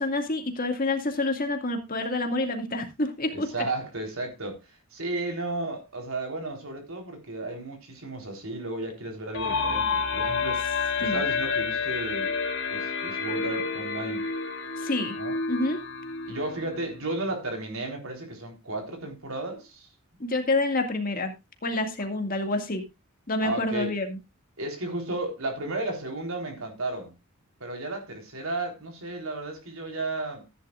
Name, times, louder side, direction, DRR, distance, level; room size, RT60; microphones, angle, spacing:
voice 1, 0.0-3.5 11.0-11.2 14.8-15.1 15.5-15.8 20.2-21.3 21.6-22.8 23.3-24.2, left 2 dB, 40° left, 2.1 m, -28 dB
voice 2, 3.3-4.6 4.9-10.6 11.0-12.3 12.7-14.2 15.1-15.3 16.3-19.9 23.4-23.9 24.6-27.1 27.6-30.4, right 2 dB, 70° right, 3.9 m, -33 dB
sound 1, 9.3-17.0, left 4 dB, 60° left, 2.7 m, -29 dB
15.0 x 10.0 x 2.5 m
head